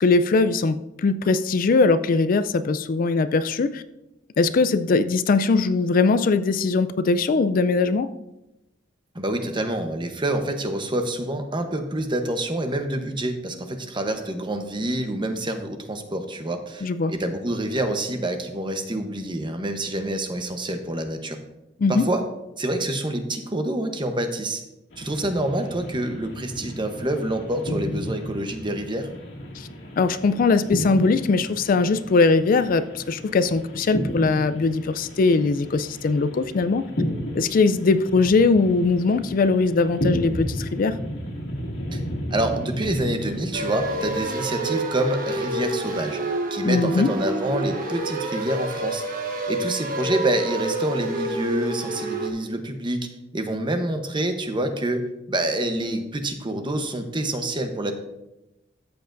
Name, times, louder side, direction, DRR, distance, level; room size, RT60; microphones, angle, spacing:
voice 1, 0.0-3.8 4.4-8.1 16.8-17.1 21.8-22.1 29.6-29.7 30.0-36.9 37.4-41.0 46.6-47.1, left 4 dB, 50° left, 12 dB, 0.4 m, -20 dB
voice 2, 9.1-21.4 21.9-22.2 22.6-24.6 25.0-29.1 41.9-42.0 42.3-46.2 46.5-49.0 49.5-57.9, right 1 dB, 25° right, 6 dB, 0.9 m, -27 dB
sound 1, 24.9-44.2, equal, 80° left, 2.2 m, -33 dB
sound 2, 43.5-52.3, right 1 dB, 50° right, 1.3 m, -28 dB
13.5 x 7.9 x 2.6 m, 0.93 s
head